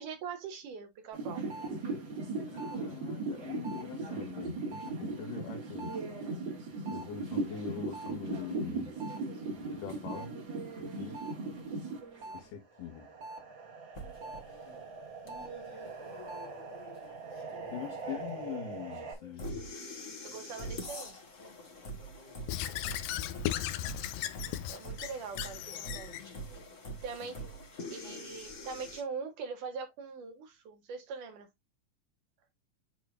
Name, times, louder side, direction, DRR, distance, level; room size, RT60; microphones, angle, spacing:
voice 1, 0.0-1.4 20.2-21.1 24.7-26.1 27.0-27.4 27.9-31.5, right 5 dB, 70° right, 3.0 m, -42 dB
sound 1, 1.1-12.4 12.8-19.1, right 3 dB, 40° right, 2.5 m, -39 dB
voice 2, 2.5-5.9 6.9-8.9 9.5-10.4 11.0-11.2 12.3-13.1 17.7-19.7, left 9 dB, 75° left, 3.1 m, -43 dB
sound 2, 13.9-29.0, equal, 40° left, 1.1 m, -45 dB
Squeak / Writing, 22.5-26.2, left 12 dB, 90° left, 2.5 m, -36 dB
11.0 x 3.9 x 2.5 m
omnidirectional pair, 4.0 m